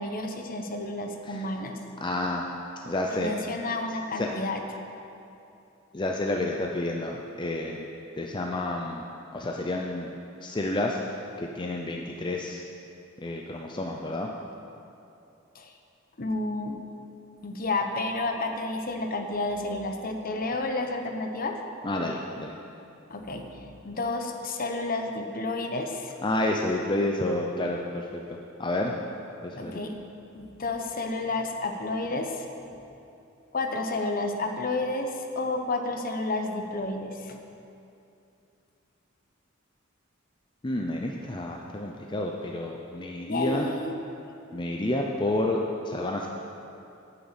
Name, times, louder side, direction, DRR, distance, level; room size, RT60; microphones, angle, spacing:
voice 1, 0.0-1.8 3.1-4.6 15.5-15.7 16.2-16.8 17.4-21.6 23.1-26.1 29.6-29.9 30.3-32.8 33.5-37.4 43.3-43.9, left 2 dB, 45° left, 4 dB, 1.0 m, -31 dB
voice 2, 2.0-2.4 2.8-3.3 4.2-4.3 5.9-7.9 8.2-9.0 9.3-10.1 10.4-12.6 13.2-14.3 21.8-22.6 26.2-28.2 28.6-28.9 29.4-29.8 40.6-43.7 44.5-46.3, left 1 dB, 25° left, 0 dB, 0.6 m, -30 dB
9.2 x 7.2 x 8.8 m, 2.7 s
head